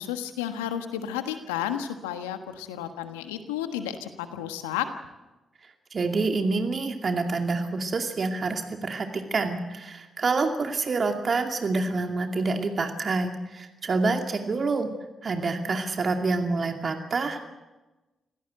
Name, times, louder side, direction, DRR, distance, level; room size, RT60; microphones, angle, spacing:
voice 1, 0.0-4.9, left 10 dB, 85° left, 8 dB, 1.4 m, -32 dB
voice 2, 5.9-14.9 15.2-17.4, right 3 dB, 50° right, 5 dB, 2.4 m, -27 dB
26.0 x 16.5 x 7.9 m, 1.1 s
hypercardioid pair, 40°, 0 cm